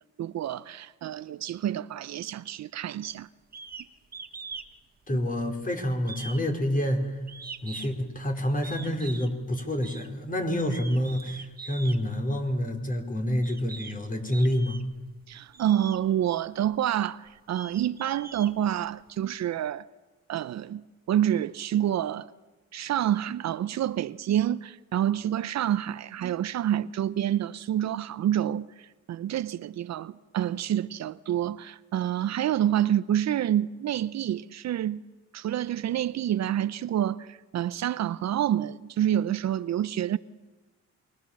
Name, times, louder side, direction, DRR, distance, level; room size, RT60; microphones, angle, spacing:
voice 1, 0.2-3.3 15.3-19.9 20.3-22.3 22.7-35.0 35.3-40.2, right 11 dB, 60° right, 0.7 m, -28 dB
sound 1, 3.5-3.9 4.1-4.7 5.0-5.6 6.0-8.1 8.6-9.3 9.8-10.1 10.6-12.0 12.8-12.9 13.4-14.0 14.3-15.0 15.5-16.0 16.6-16.7 17.3-19.1, right 5 dB, 30° right, 1.7 m, -42 dB
voice 2, 5.1-7.2 7.6-14.8, equal, 25° left, 4.7 m, -28 dB
28.0 x 23.5 x 7.3 m
cardioid pair, 90°, 30 cm